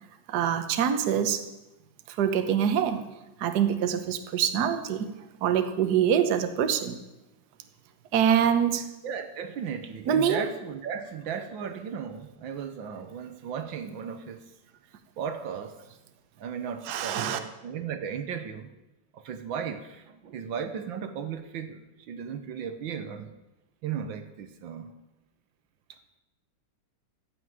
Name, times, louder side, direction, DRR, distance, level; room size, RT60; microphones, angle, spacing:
voice 1, 0.3-1.4 2.1-3.1 3.4-5.1 5.4-7.0 8.1-8.9 10.1-10.5 16.8-17.4, right 8 dB, 55° right, 7 dB, 1.4 m, -25 dB
voice 2, 9.0-14.5 15.2-15.8 16.4-18.7 19.1-23.3 23.8-24.9, right 7 dB, 75° right, 9 dB, 1.6 m, -36 dB
15.0 x 6.3 x 9.3 m, 0.99 s
omnidirectional pair, 2.2 m